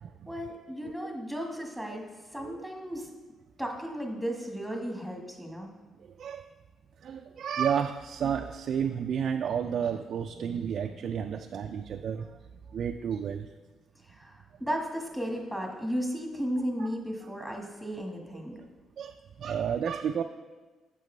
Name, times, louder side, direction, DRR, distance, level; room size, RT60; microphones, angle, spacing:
voice 1, 0.2-2.0 2.3-3.1 3.6-5.7 14.0-18.6, equal, 5° left, 1 dB, 1.6 m, -34 dB
voice 2, 7.0-12.3 12.7-13.5 16.8-16.9 19.0-20.2, right 8 dB, 60° right, 5 dB, 0.3 m, -31 dB
8.8 x 6.7 x 3.3 m, 1.3 s
cardioid pair, 90°, 0 cm